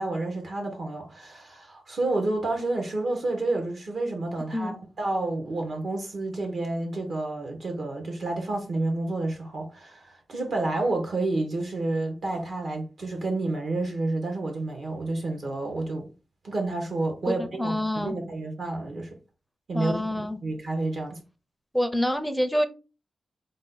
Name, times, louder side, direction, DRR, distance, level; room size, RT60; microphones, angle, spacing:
voice 1, 0.0-4.7 5.0-16.1 16.4-19.2 19.7-21.2, right 2 dB, 60° right, 1.0 m, -30 dB
voice 2, 17.3-18.2 19.7-20.4 21.7-22.7, equal, ahead, 0.5 m, -27 dB
5.3 x 2.2 x 3.8 m
wide cardioid pair, 140°, 0 cm